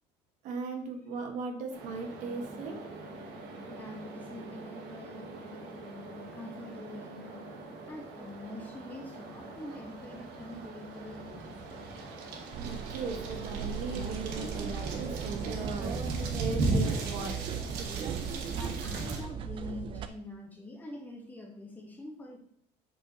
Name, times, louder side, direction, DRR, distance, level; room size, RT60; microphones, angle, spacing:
voice 1, 0.4-2.8 12.6-16.0 16.4-17.4, right 4 dB, 55° right, 3 dB, 1.7 m, -38 dB
sound 1, 1.7-19.2, right 2 dB, 75° right, 2.1 m, -38 dB
voice 2, 3.4-7.5 7.9-11.8 18.5-22.4, left 1 dB, 10° left, 1 dB, 1.3 m, -45 dB
sound 2, 12.5-20.1, right 7 dB, 35° right, 0.6 m, -37 dB
8.1 x 6.2 x 4.1 m, 0.65 s
cardioid pair, 170°, 15 cm